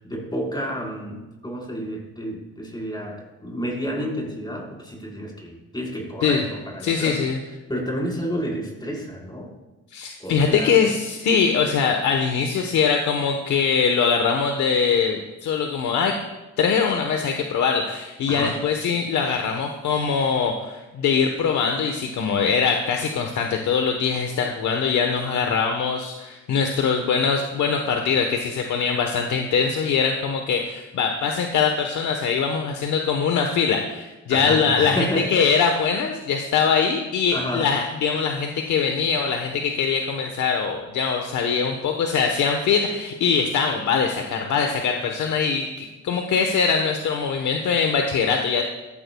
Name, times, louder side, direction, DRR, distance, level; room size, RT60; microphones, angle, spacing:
voice 1, 0.0-7.3 7.7-9.5 10.2-10.8 18.3-18.6 34.3-35.5 37.3-37.7, equal, 15° left, -2 dB, 4.4 m, -30 dB
voice 2, 6.8-7.4 9.9-16.2 16.6-48.6, left 6 dB, 75° left, 3 dB, 1.1 m, -22 dB
15.0 x 13.5 x 2.3 m, 1.1 s
cardioid pair, 90°, 30 cm